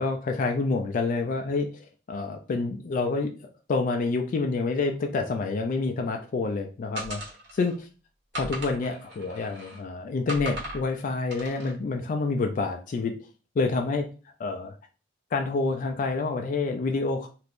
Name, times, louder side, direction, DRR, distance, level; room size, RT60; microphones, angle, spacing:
voice 1, 0.0-3.3 3.7-7.2 7.5-7.9 8.3-13.1 13.6-14.1 14.4-14.7 15.3-17.3, left 3 dB, 45° left, 4 dB, 0.3 m, -28 dB
sound 1, 7.0-7.7 8.3-9.8 10.3-10.8 11.3-11.7, equal, 60° right, 1.1 m, -37 dB
2.9 x 2.5 x 3.5 m, 0.36 s
head